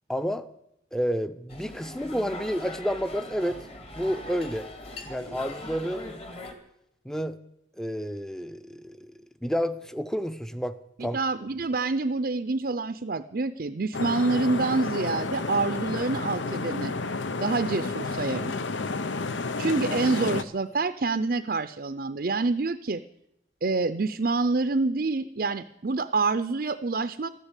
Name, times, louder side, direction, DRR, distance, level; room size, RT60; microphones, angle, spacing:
voice 1, 0.1-0.5 0.9-3.6 3.9-4.7 5.1-6.2 7.0-7.4 7.8-9.1 9.4-11.2, equal, 5° left, 12 dB, 0.6 m, -30 dB
sound 1, 1.5-6.5, left 2 dB, 30° left, 1.9 m, -41 dB
voice 2, 11.0-16.9 17.4-18.5 19.6-23.0 23.6-27.3, right 3 dB, 50° right, 10 dB, 0.5 m, -27 dB
sound 2, 13.9-20.4, left 3 dB, 85° left, 0.8 m, -31 dB
14.0 x 12.0 x 8.2 m, 0.80 s
head